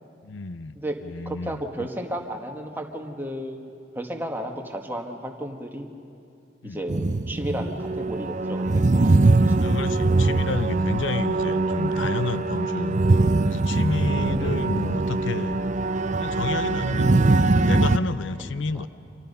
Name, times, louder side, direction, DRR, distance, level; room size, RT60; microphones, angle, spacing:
voice 1, 0.2-0.8 1.0-1.9 6.6-6.8 7.6-7.7 9.6-13.2 13.4-15.6 16.2-18.9, left 3 dB, 80° left, 13 dB, 0.6 m, -30 dB
voice 2, 1.3-3.7 4.0-5.9 6.6-9.6 18.4-18.9, right 1 dB, 10° right, 2 dB, 1.7 m, -33 dB
sound 1, 6.9-18.0, right 2 dB, 40° right, 0.6 m, -22 dB
29.5 x 26.0 x 5.5 m, 2.5 s
head